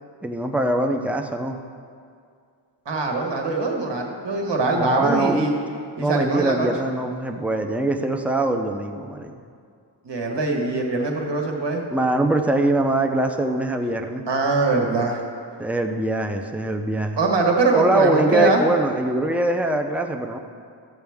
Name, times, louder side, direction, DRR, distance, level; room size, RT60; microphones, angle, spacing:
voice 1, 0.2-1.6 4.7-5.4 6.0-9.3 11.9-14.3 15.6-17.2 17.7-20.4, right 1 dB, 5° right, 4 dB, 0.6 m, -23 dB
voice 2, 2.8-5.5 6.0-6.7 10.0-11.8 14.3-15.2 17.2-18.6, right 3 dB, 60° right, 1 dB, 1.5 m, -22 dB
13.0 x 7.8 x 3.5 m, 2.2 s
wide cardioid pair, 80°, 47 cm